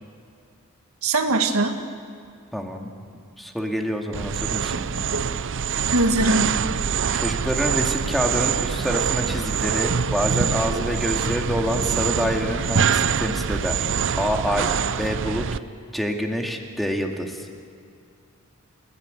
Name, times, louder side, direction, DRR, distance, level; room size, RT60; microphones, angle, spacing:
voice 1, 1.0-1.8 4.7-5.2 5.8-6.5, right 2 dB, 90° right, 5 dB, 1.9 m, -22 dB
voice 2, 2.5-2.9 3.4-4.8 7.1-13.9 14.2-15.6 15.9-17.5, equal, ahead, 2 dB, 2.2 m, -27 dB
sound 1, 4.1-15.6, right 7 dB, 60° right, 0.6 m, -24 dB
29.5 x 16.0 x 9.3 m, 2.4 s
head